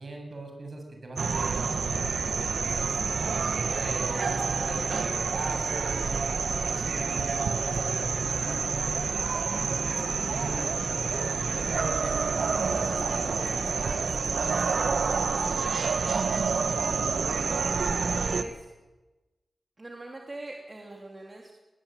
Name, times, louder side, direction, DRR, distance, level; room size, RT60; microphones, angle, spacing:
voice 1, 0.0-3.0 3.3-3.4 3.7-14.6, right 2 dB, 60° right, 3 dB, 7.9 m, -40 dB
sound 1, 1.2-18.4, right 5 dB, 85° right, 1.2 m, -28 dB
voice 2, 18.1-18.6 19.8-21.5, right 2 dB, 40° right, 0 dB, 3.1 m, -41 dB
21.0 x 20.0 x 9.2 m, 1.1 s
wide cardioid pair, 65°, 0 cm